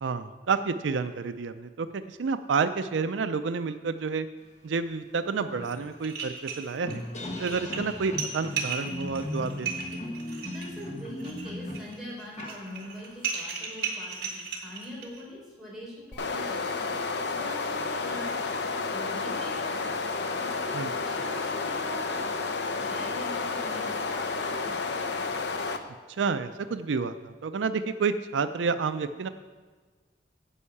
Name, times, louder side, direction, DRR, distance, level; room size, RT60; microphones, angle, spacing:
voice 1, 0.0-4.3 4.6-7.0 7.4-10.0 20.7-20.9 26.2-29.3, right 5 dB, 80° right, 10 dB, 0.5 m, -29 dB
sound 1, 4.7-4.8 5.2-13.2, left 1 dB, 40° left, 1.3 m, -38 dB
sound 2, 5.6-5.7 6.0-7.0 7.3-15.2, right 6 dB, 55° right, 2.3 m, -35 dB
voice 2, 10.4-16.7 17.3-18.4 18.7-19.9 20.4-22.3 22.6-24.9, equal, ahead, -6 dB, 4.0 m, -43 dB
sound 3, 16.1-25.8, left 4 dB, 65° left, 0.7 m, -31 dB
9.8 x 5.6 x 8.4 m, 1.4 s
head